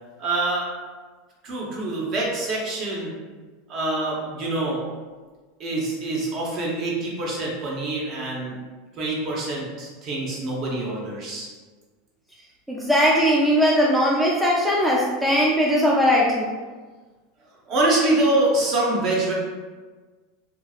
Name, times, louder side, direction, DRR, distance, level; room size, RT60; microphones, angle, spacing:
voice 1, 0.2-0.7 1.4-3.1 3.7-4.8 5.6-8.6 9.0-11.5 17.7-19.3, right 2 dB, 45° right, -3 dB, 0.9 m, -25 dB
voice 2, 12.7-16.5, equal, 5° right, -4 dB, 0.4 m, -19 dB
2.7 x 2.7 x 2.4 m, 1.4 s
hypercardioid pair, 110°, 0 cm